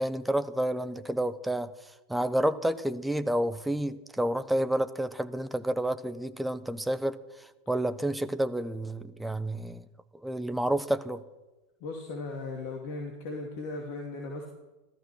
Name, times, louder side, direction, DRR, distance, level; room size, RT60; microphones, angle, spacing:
voice 1, 0.0-1.7 2.1-7.2 7.7-9.8 10.2-11.2, right 1 dB, 5° right, 12 dB, 1.0 m, -29 dB
voice 2, 11.8-14.5, left 3 dB, 50° left, 1 dB, 2.7 m, -37 dB
16.0 x 14.0 x 6.2 m, 1.1 s
figure-of-eight pair, 85°, 0 cm